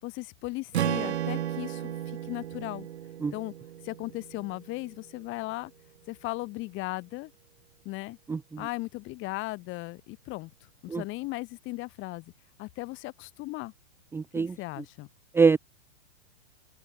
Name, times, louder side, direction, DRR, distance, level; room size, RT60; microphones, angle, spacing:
voice 1, 0.0-2.9 3.3-3.5 3.8-5.7 6.1-7.3 7.9-8.2 8.6-10.5 10.8-12.3 12.6-13.7 14.3-15.1, left 21 dB, 35° left, 7.0 m, -37 dB
Strum, 0.7-5.0, right 11 dB, 70° right, 5.2 m, -34 dB
voice 2, 8.3-8.6 10.9-11.0 14.1-14.6 15.3-15.6, right 5 dB, 5° right, 0.7 m, -24 dB
open air
hypercardioid pair, 135°, 34 cm